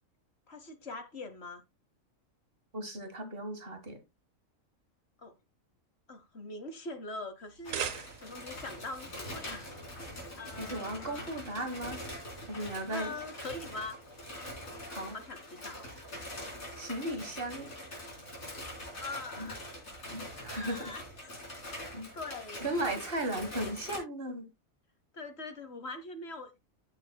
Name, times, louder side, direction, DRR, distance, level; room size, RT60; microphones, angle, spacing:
voice 1, 0.5-1.6 5.2-5.3 6.1-7.8 8.2-10.0 10.4-11.3 12.6-14.0 15.1-15.9 18.5-18.7 19.0-19.6 20.5-21.3 21.8-22.6 23.6-23.7 25.1-26.6, left 2 dB, 55° left, 1.2 m, -43 dB
voice 2, 2.7-4.0 10.6-12.0 12.5-13.1 14.9-15.2 16.8-17.7 19.4-19.5 20.1-20.9 21.9-22.1 22.6-24.5, right 1 dB, 45° right, 1.7 m, -36 dB
sound 1, 7.4-8.6, right 8 dB, 75° right, 1.3 m, -38 dB
sound 2, 7.6-24.0, left 1 dB, 85° left, 4.2 m, -44 dB
14.5 x 6.6 x 2.2 m
omnidirectional pair, 1.4 m